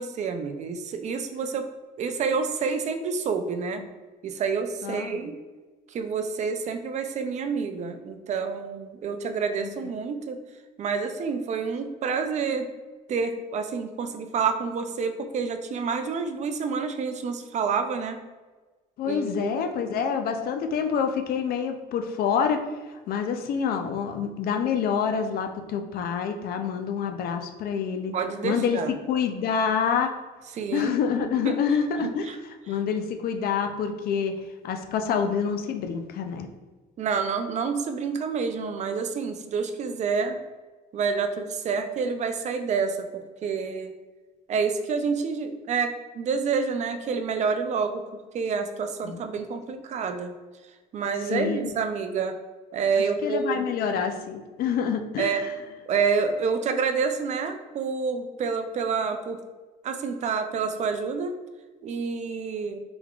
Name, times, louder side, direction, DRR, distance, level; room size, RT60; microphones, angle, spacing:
voice 1, 0.0-1.6 2.0-3.8 4.2-5.3 5.9-10.4 10.8-12.7 13.1-18.2 19.0-19.5 28.1-29.0 30.6-30.9 31.4-31.5 32.3-32.4 37.0-40.4 40.9-43.9 44.5-48.0 48.3-50.3 50.9-52.4 52.7-53.6 55.2-55.4 55.9-59.4 59.8-61.3 61.8-62.8, right 5 dB, 45° right, 7 dB, 0.4 m, -28 dB
voice 2, 4.8-5.2 9.6-9.9 19.0-22.6 23.1-28.1 28.4-28.8 29.1-30.1 30.7-32.3 32.7-34.3 34.6-36.5 49.0-49.2 51.3-51.7 53.0-55.5, left 6 dB, 65° left, 6 dB, 0.5 m, -27 dB
3.5 x 3.4 x 2.3 m, 1.3 s
cardioid pair, 110°, 17 cm